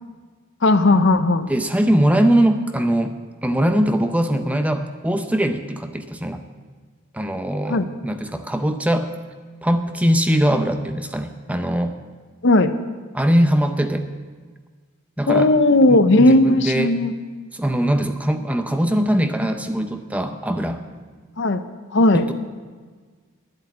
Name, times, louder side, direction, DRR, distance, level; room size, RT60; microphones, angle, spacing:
voice 1, 0.6-1.5 7.7-7.9 12.4-12.7 15.3-17.1 21.4-21.6 21.9-22.3, left 2 dB, 60° left, 10 dB, 0.7 m, -16 dB
voice 2, 1.5-3.1 3.4-6.4 7.1-9.1 9.6-12.0 13.1-14.1 15.2-15.5 15.9-16.9 17.5-20.8 22.1-22.3, right 1 dB, 5° right, 7 dB, 0.6 m, -21 dB
11.0 x 7.9 x 9.4 m, 1.5 s
head